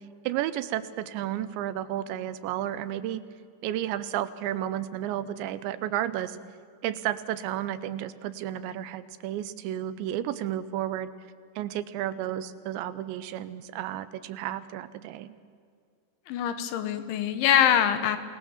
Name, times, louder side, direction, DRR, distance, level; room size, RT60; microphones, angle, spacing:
voice 1, 0.3-3.2 3.6-6.4 6.8-11.1 11.6-15.3, right 12 dB, 80° right, 13 dB, 3.0 m, -32 dB
voice 2, 16.3-18.2, left 10 dB, 85° left, 10 dB, 3.7 m, -24 dB
27.5 x 19.0 x 7.3 m, 2.2 s
omnidirectional pair, 5.3 m